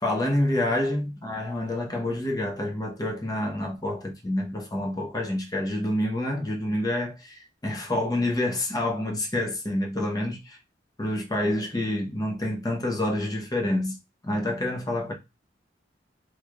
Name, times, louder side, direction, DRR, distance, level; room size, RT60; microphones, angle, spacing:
voice 1, 0.0-10.6 11.0-14.0 14.2-15.1, left 1 dB, 20° left, 0.8 m, -28 dB
3.2 x 3.0 x 2.4 m
head